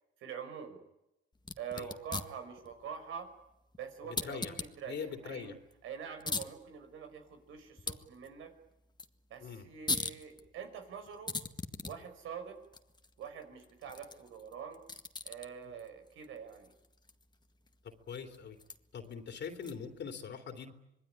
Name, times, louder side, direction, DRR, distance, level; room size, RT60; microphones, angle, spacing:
voice 1, 0.2-0.9 1.6-3.3 3.8-5.6 5.8-8.5 9.3-11.4 11.8-12.6 13.2-14.8 15.2-16.7, right 7 dB, 85° right, 7 dB, 5.7 m, -45 dB
sound 1, 1.4-20.0, left 3 dB, 20° left, 1.8 m, -44 dB
voice 2, 4.0-4.5 4.8-5.6 9.4-9.7 17.8-18.6 18.9-20.7, left 6 dB, 60° left, 6 dB, 3.1 m, -42 dB
26.0 x 21.5 x 10.0 m, 0.86 s
cardioid pair, 90°, 20 cm